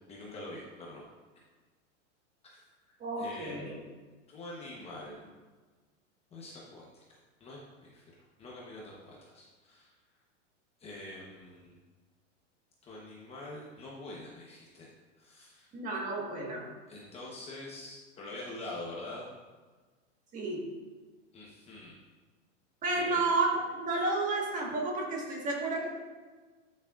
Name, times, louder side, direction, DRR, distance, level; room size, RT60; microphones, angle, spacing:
voice 1, 0.1-1.0 2.4-2.6 2.9-3.6 4.3-5.2 6.3-7.0 7.4-8.0 8.4-9.9 10.8-11.8 12.8-14.9 15.2-15.7 16.9-19.2 21.3-22.0 22.9-23.2, left 2 dB, 15° left, -4 dB, 1.0 m, -45 dB
voice 2, 3.0-3.8 15.7-16.7 20.3-20.7 22.8-26.0, right 3 dB, 20° right, -1 dB, 1.5 m, -31 dB
12.0 x 6.6 x 2.4 m, 1.4 s
supercardioid pair, 155°, 37 cm